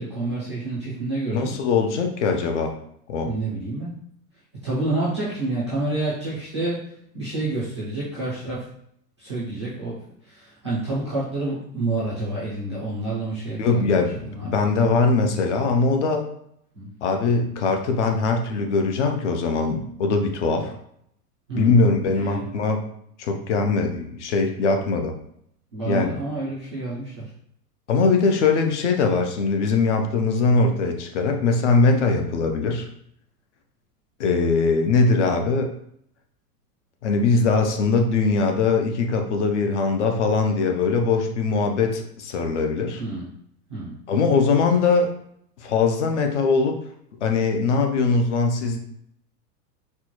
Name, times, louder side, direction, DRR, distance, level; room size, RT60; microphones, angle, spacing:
voice 1, 0.0-1.5 3.2-3.9 4.6-6.8 7.1-8.7 9.2-10.0 10.3-14.7 16.7-16.9 21.5-22.5 25.7-27.3 43.0-43.3 43.7-44.0, right 2 dB, 20° right, -10 dB, 0.3 m, -28 dB
voice 2, 1.3-2.7 3.1-3.3 13.6-16.3 17.0-20.7 21.5-22.8 23.2-25.1 25.9-26.2 27.9-32.9 34.2-35.7 37.0-43.0 44.1-45.1 45.6-46.8 47.2-48.8, left 4 dB, 50° left, 4 dB, 0.5 m, -21 dB
4.4 x 2.1 x 2.9 m, 0.70 s
supercardioid pair, 160°, 49 cm